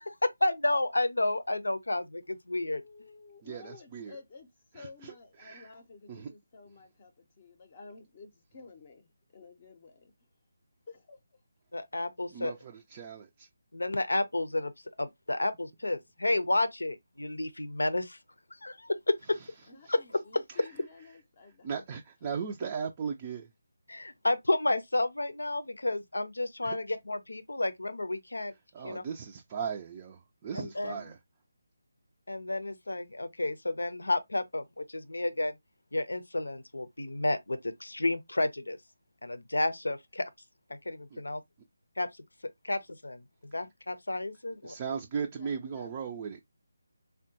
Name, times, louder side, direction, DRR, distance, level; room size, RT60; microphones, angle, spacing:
voice 1, 0.0-2.8 11.7-12.5 13.7-14.7 15.0-18.2 18.6-19.4 19.9-20.4 23.9-28.5 28.8-29.0 30.5-31.0 32.3-35.6 35.9-38.8 39.2-40.3 40.7-41.4 42.0-42.1 42.6-43.2 43.5-44.8, left 2 dB, 85° left, 0.6 m, -31 dB
voice 2, 2.8-4.5 4.7-10.1 10.9-11.2 19.7-21.7 45.3-45.9, left 4 dB, 35° left, 0.7 m, -52 dB
voice 3, 3.4-4.2 4.7-5.7 6.1-6.3 12.3-13.5 19.8-19.9 20.6-20.7 21.6-23.5 26.6-26.8 28.7-31.2 41.1-41.2 44.6-46.4, right 6 dB, 25° right, 0.4 m, -37 dB
3.6 x 2.2 x 2.7 m
figure-of-eight pair, 160°, 0 cm